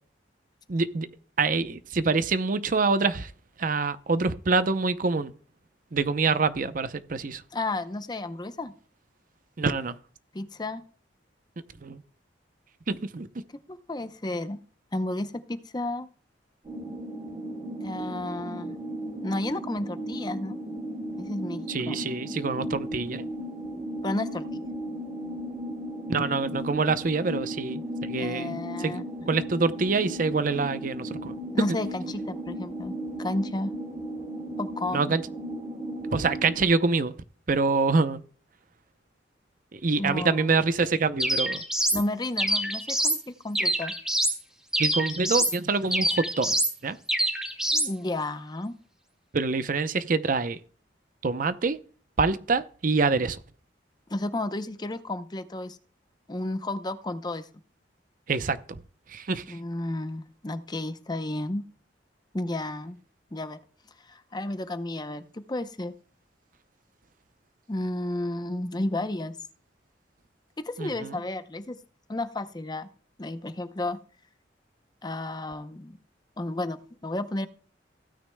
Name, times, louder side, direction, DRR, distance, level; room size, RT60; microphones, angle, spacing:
voice 1, 0.7-1.1 1.4-3.3 3.6-5.3 5.9-7.4 9.6-10.0 11.8-12.0 12.9-13.4 21.7-23.2 26.1-28.9 29.3-31.8 34.9-35.2 36.1-37.1 37.5-38.2 39.7-41.6 44.8-47.0 49.3-50.6 51.2-51.8 52.2-53.4 58.3-58.8 59.1-59.6 70.8-71.2, right 4 dB, 45° right, 0.6 m, -26 dB
voice 2, 7.5-8.7 10.3-10.8 13.7-14.6 14.9-16.1 17.8-18.8 19.2-20.6 21.2-22.0 24.0-24.6 28.2-29.0 31.5-33.7 34.6-35.0 40.0-40.5 41.9-43.9 47.7-48.7 54.1-55.8 56.3-57.5 59.5-61.6 62.3-63.0 63.3-63.6 64.1-65.9 67.7-69.4 70.6-71.8 72.1-72.9 73.2-74.0 75.0-76.0 76.4-77.5, left 2 dB, 25° left, 0.6 m, -32 dB
sound 1, 16.6-36.6, right 1 dB, 30° right, 3.2 m, -36 dB
sound 2, 41.2-42.0 42.4-43.2 43.5-44.4 44.7-45.6 45.9-46.7 47.1-47.9, right 1 dB, 5° right, 1.5 m, -26 dB
16.5 x 9.4 x 2.2 m
head